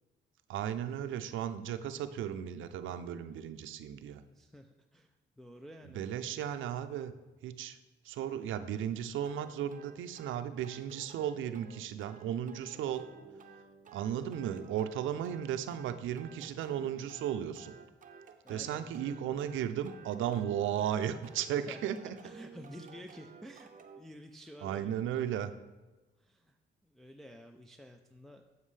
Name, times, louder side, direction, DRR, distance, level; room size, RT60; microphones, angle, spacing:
voice 1, 0.5-4.2 5.9-7.1 7.4-7.8 8.0-13.0 13.9-17.7 18.5-22.1 24.6-25.5, right 10 dB, 80° right, 11 dB, 0.5 m, -35 dB
voice 2, 4.3-6.0 18.4-19.3 21.6-23.7 24.0-24.9 26.2-26.5 26.8-28.4, equal, ahead, 3 dB, 0.4 m, -51 dB
sound 1, 9.2-24.0, right 6 dB, 40° right, 0.7 m, -54 dB
8.0 x 7.3 x 3.3 m, 1.2 s
cardioid pair, 90°, 20 cm